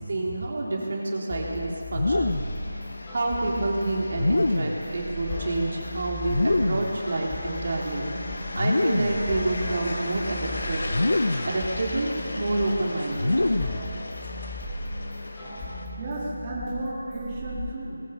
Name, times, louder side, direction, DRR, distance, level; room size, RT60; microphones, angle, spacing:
voice 1, 0.1-2.8 3.1-8.1 8.5-10.8 11.4-13.3, right 2 dB, 50° right, -2 dB, 3.5 m, -28 dB
sound 1, 1.3-17.6, left 1 dB, 15° left, 4.3 m, -37 dB
sound 2, 1.9-2.6 4.1-4.9 6.2-7.0 8.5-9.2 10.9-11.6 13.1-13.9, left 2 dB, 80° left, 1.2 m, -25 dB
sound 3, 2.2-15.9, left 2 dB, 60° left, 2.7 m, -37 dB
voice 2, 16.0-18.0, right 1 dB, 20° right, -7 dB, 3.6 m, -33 dB
21.0 x 20.0 x 7.1 m, 2.6 s
figure-of-eight pair, 170°, 0 cm